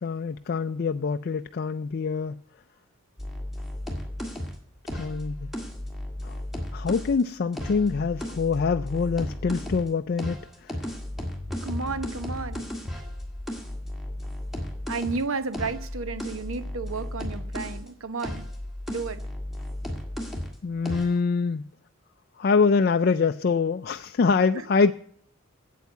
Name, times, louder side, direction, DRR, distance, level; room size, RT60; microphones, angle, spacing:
voice 1, 0.0-2.4 4.9-5.5 6.2-6.4 6.7-10.8 20.6-21.6 22.4-24.9, left 5 dB, 50° left, 0.4 m, -25 dB
sound 1, 3.2-7.2 7.5-9.9 10.2-17.9 18.2-20.6 20.9-21.2, left 1 dB, ahead, 1.8 m, -34 dB
voice 2, 11.6-12.6 14.9-18.4 18.9-19.2, right 4 dB, 75° right, 1.0 m, -32 dB
8.4 x 8.3 x 8.0 m
head